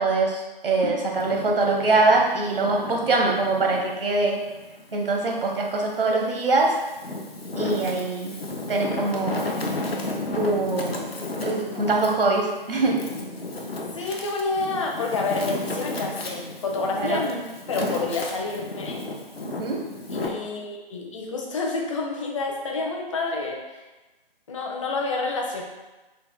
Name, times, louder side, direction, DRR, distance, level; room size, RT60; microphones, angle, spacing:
voice 1, 0.0-4.4 4.9-6.8 7.5-8.3 8.7-9.5 10.3-11.1 11.4-13.0 16.9-17.2 19.4-19.8, right 3 dB, 70° right, 1 dB, 0.8 m, -23 dB
Wind, 1.1-3.9 4.4-5.7 6.3-20.3, left 2 dB, 85° left, 0.7 m, -33 dB
voice 2, 14.0-17.4 17.7-19.0 20.1-23.8 24.5-25.6, left 3 dB, 35° left, 0 dB, 0.6 m, -29 dB
4.2 x 2.4 x 3.5 m, 1.1 s
figure-of-eight pair, 135°, 30 cm